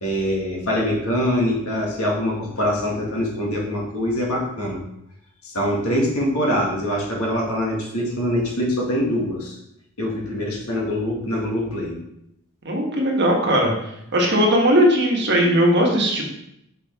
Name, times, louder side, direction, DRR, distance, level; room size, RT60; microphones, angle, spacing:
voice 1, 0.0-4.8 5.4-9.6 10.0-12.0, equal, 75° left, -2 dB, 1.8 m, -24 dB
voice 2, 12.6-13.7 14.1-16.3, equal, 50° right, 0 dB, 1.3 m, -18 dB
5.5 x 5.5 x 3.5 m, 0.79 s
head